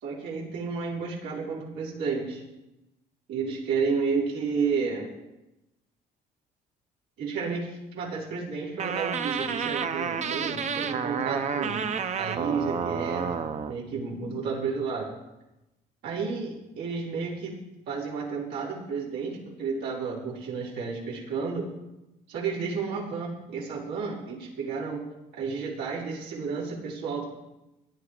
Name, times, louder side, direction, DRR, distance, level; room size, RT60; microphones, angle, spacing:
voice 1, 0.0-2.4 3.3-5.1 7.2-11.8 12.2-13.4 13.7-15.1 16.0-17.5 17.9-21.7 22.3-25.0 25.3-27.4, right 5 dB, 85° right, -5 dB, 5.3 m, -31 dB
sound 1, 8.8-13.7, right 6 dB, 45° right, 1.0 m, -30 dB
16.5 x 10.5 x 5.1 m, 0.95 s
cardioid pair, 110°, 17 cm